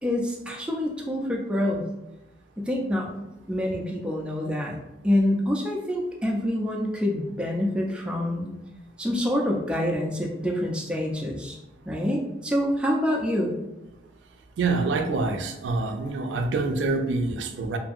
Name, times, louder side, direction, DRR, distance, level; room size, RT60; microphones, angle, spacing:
voice 1, 0.0-1.8 2.6-4.8 5.0-8.5 9.0-11.6 11.9-13.5, left 1 dB, 5° right, -2 dB, 0.3 m, -26 dB
voice 2, 14.6-17.8, right 3 dB, 80° right, 5 dB, 0.3 m, -26 dB
2.7 x 2.6 x 2.4 m, 0.98 s
head